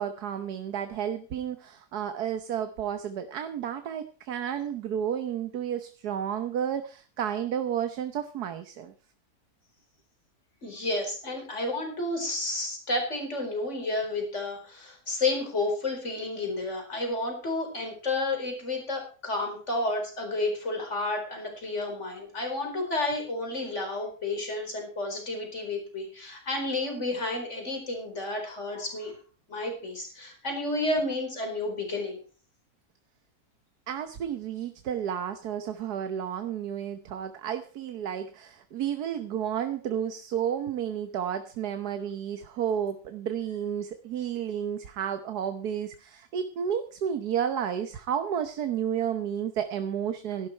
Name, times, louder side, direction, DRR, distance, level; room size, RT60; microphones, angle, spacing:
voice 1, 0.0-8.9 33.9-50.5, right 9 dB, 90° right, 9 dB, 1.5 m, -31 dB
voice 2, 10.6-29.1 29.5-32.2, left 2 dB, 50° left, 2 dB, 4.8 m, -31 dB
14.5 x 12.0 x 4.4 m, 0.39 s
omnidirectional pair, 1.6 m